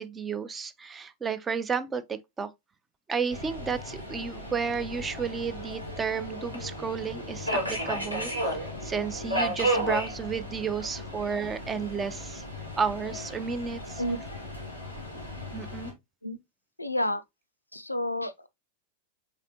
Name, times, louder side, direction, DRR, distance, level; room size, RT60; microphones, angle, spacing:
voice 1, 0.0-2.5 3.1-12.4 12.8-14.0 15.5-15.9, right 6 dB, 20° right, 0.4 m, -32 dB
Subway metro underground, 3.3-15.9, equal, 85° right, 1.5 m, -34 dB
voice 2, 16.8-17.2 17.7-18.5, left 1 dB, 85° left, 0.4 m, -30 dB
4.0 x 3.5 x 2.7 m
figure-of-eight pair, 90°, 0 cm